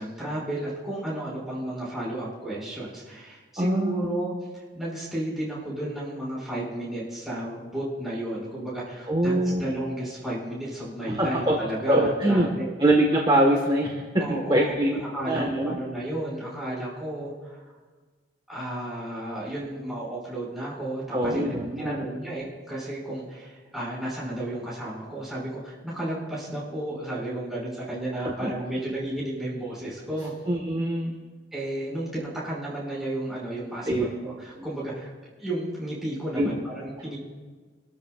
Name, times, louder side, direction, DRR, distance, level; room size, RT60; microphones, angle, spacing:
voice 1, 0.0-9.3 9.6-12.7 14.2-14.8 15.1-17.6 18.5-21.4 21.8-30.3 31.5-33.9 34.2-35.1 35.4-37.2, right 1 dB, ahead, -7 dB, 5.9 m, -33 dB
voice 2, 3.6-4.0 9.1-9.7 11.2-11.6 11.9-12.5 12.8-14.0 14.3-15.0 15.3-15.8 21.1-22.0 28.4-28.5 30.5-31.1 33.9-34.0 36.4-36.5, right 1 dB, 25° right, -1 dB, 1.5 m, -23 dB
28.5 x 13.5 x 2.5 m, 1.4 s
head